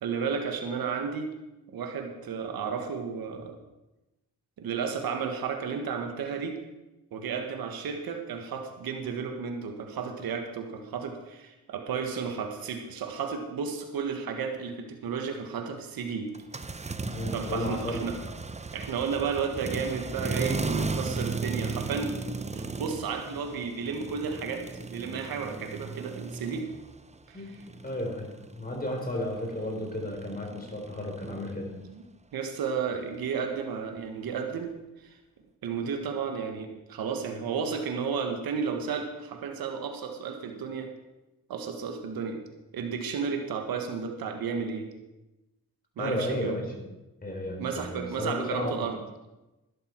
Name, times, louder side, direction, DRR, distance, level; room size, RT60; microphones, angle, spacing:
voice 1, 0.0-1.3 1.7-3.5 4.6-6.5 7.1-16.3 17.3-18.2 18.7-22.3 22.5-26.7 27.3-27.4 31.8-32.0 32.3-34.7 35.0-35.2 35.6-40.9 41.5-42.4 42.7-44.9 46.0-46.6 47.6-49.0, right 6 dB, 85° right, 4 dB, 1.6 m, -33 dB
sound 1, 16.3-27.1 27.4-31.5, right 3 dB, 20° right, 0.8 m, -36 dB
voice 2, 17.0-18.1 27.3-27.5 27.8-28.3 28.5-31.7 46.0-46.9 47.2-48.9, left 1 dB, 25° left, 1 dB, 4.2 m, -33 dB
12.5 x 11.5 x 4.6 m, 1.0 s
cardioid pair, 65°, 35 cm